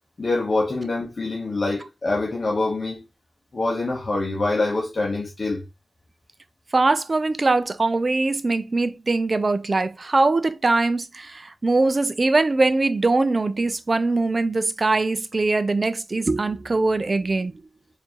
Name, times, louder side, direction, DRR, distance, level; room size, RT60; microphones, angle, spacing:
voice 1, 0.2-3.0 3.5-5.6, left 2 dB, 45° left, 0.8 m, -25 dB
voice 2, 6.7-17.6, right 3 dB, 40° right, 0.4 m, -22 dB
4.4 x 2.6 x 2.8 m
wide cardioid pair, 90°, 0 cm